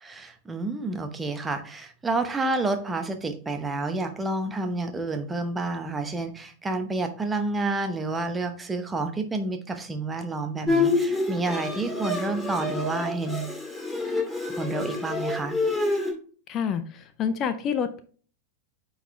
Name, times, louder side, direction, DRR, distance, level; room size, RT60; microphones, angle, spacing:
voice 1, 0.0-13.5 14.6-15.5, right 2 dB, 15° right, 7 dB, 0.9 m, -29 dB
Bowed string instrument, 10.7-16.1, left 3 dB, 5° left, 1.9 m, -27 dB
voice 2, 16.5-18.0, left 7 dB, 30° left, 10 dB, 0.5 m, -28 dB
9.1 x 4.0 x 3.2 m, 0.42 s
figure-of-eight pair, 90°, 0 cm